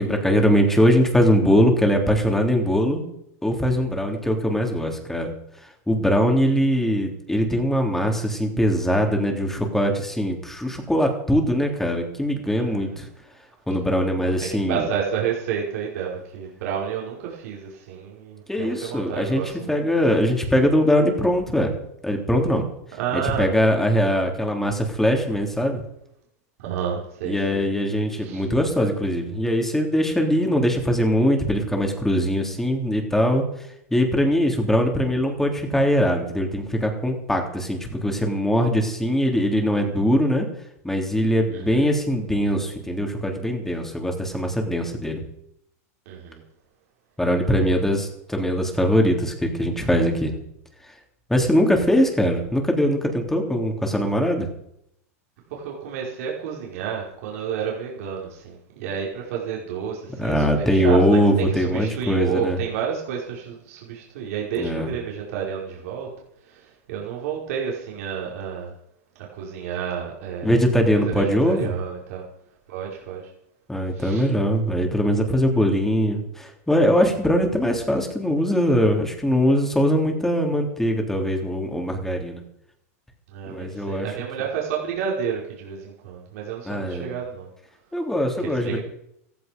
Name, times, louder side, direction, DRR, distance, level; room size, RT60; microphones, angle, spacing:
voice 1, 0.0-3.0 3.4-5.3 5.9-13.1 13.7-14.8 18.5-19.4 19.7-21.7 22.0-22.7 23.4-25.8 27.2-33.4 33.9-40.5 40.8-45.2 47.2-50.3 51.3-54.5 60.2-62.6 64.6-64.9 70.4-71.7 73.7-82.4 83.5-84.1 86.7-87.1 87.9-88.8, equal, 5° left, 2 dB, 3.4 m, -21 dB
voice 2, 12.6-12.9 14.2-19.8 23.0-23.5 26.6-27.6 28.2-28.5 41.5-41.9 46.1-46.4 47.5-47.7 55.5-66.1 66.4-68.7 69.4-70.6 70.9-72.2 72.7-73.2 73.9-74.3 83.3-87.5 88.4-88.8, right 7 dB, 70° right, -3 dB, 5.2 m, -30 dB
15.5 x 15.0 x 5.3 m, 0.74 s
supercardioid pair, 135°, 8 cm